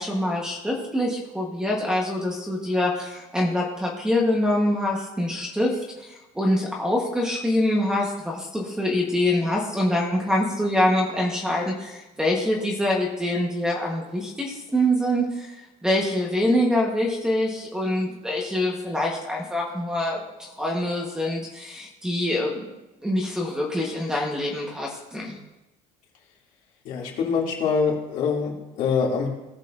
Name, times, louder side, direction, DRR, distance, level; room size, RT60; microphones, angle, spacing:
voice 1, 0.0-22.7 23.0-25.4, left 1 dB, 5° right, -1 dB, 1.2 m, -25 dB
voice 2, 26.8-29.3, left 5 dB, 55° left, -3 dB, 2.6 m, -24 dB
18.5 x 6.7 x 2.6 m, 1.0 s
cardioid pair, 170°, 16 cm